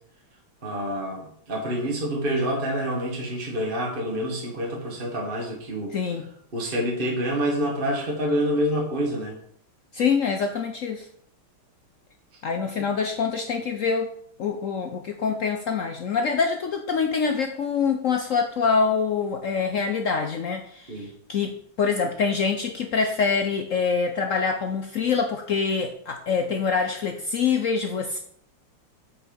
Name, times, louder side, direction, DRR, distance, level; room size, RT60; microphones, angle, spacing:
voice 1, 0.6-6.0 6.5-9.4 12.8-12.9 20.9-21.1, equal, 30° right, -1 dB, 1.5 m, -27 dB
voice 2, 5.9-6.2 9.9-11.1 12.4-14.1 14.4-28.2, left 5 dB, 80° left, 5 dB, 0.7 m, -25 dB
8.3 x 5.8 x 5.3 m, 0.64 s
omnidirectional pair, 2.3 m